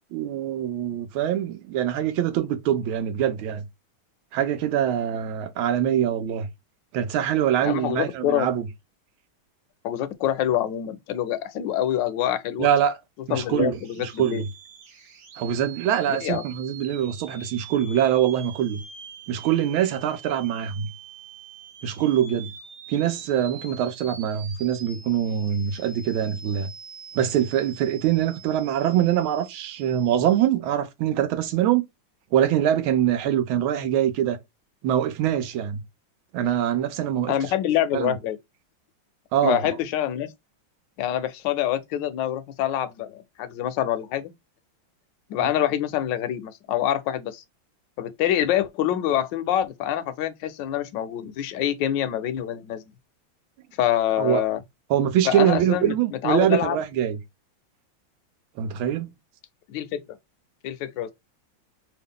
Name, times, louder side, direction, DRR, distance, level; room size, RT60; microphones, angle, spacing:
voice 1, 0.0-3.6 4.3-6.5 6.9-8.7 12.6-13.0 13.3-14.5 15.4-18.8 19.3-20.9 21.8-22.5 22.9-26.7 27.1-31.8 32.3-34.4 34.8-35.8 36.3-37.3 37.9-38.2 39.3-39.6 54.2-54.4 54.9-57.2 58.6-59.1, right 10 dB, 85° right, 1.5 m, -24 dB
voice 2, 7.6-8.5 9.8-12.7 13.3-14.4 16.1-16.4 37.3-38.4 39.4-40.3 41.0-44.3 45.3-47.4 48.0-52.8 53.8-54.6 55.2-55.9 56.2-56.8 59.7-60.0 60.6-61.1, left 11 dB, 75° left, 1.1 m, -26 dB
sound 1, 13.7-30.5, right 7 dB, 60° right, 1.0 m, -45 dB
3.4 x 2.3 x 3.6 m
omnidirectional pair, 2.2 m